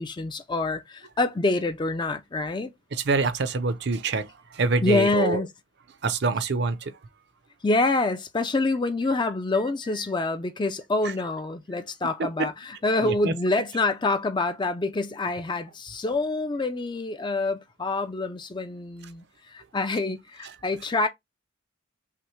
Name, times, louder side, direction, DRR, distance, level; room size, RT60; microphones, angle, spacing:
voice 1, 0.0-2.7 4.8-5.5 7.6-21.1, left 2 dB, 20° left, 0.4 m, -26 dB
voice 2, 2.9-5.4 6.0-7.0 12.2-12.5 13.0-13.3 20.4-20.6, right 3 dB, 55° right, 0.5 m, -26 dB
5.7 x 2.1 x 3.1 m
head